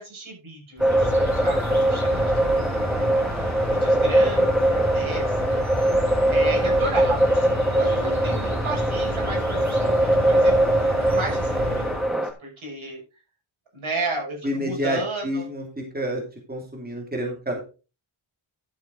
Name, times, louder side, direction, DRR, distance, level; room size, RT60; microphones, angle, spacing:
voice 1, 0.0-5.9 6.3-12.0 12.4-13.0 13.7-15.4, right 2 dB, 75° right, 0 dB, 6.2 m, -33 dB
sound 1, 0.8-12.3, right 1 dB, ahead, 1.7 m, -22 dB
sound 2, 0.8-12.2, right 1 dB, 35° right, 2.9 m, -31 dB
voice 2, 6.0-6.3 14.4-16.2 16.5-17.6, equal, 20° right, 0 dB, 2.7 m, -29 dB
11.5 x 8.2 x 3.9 m, 0.32 s
wide cardioid pair, 155°, 49 cm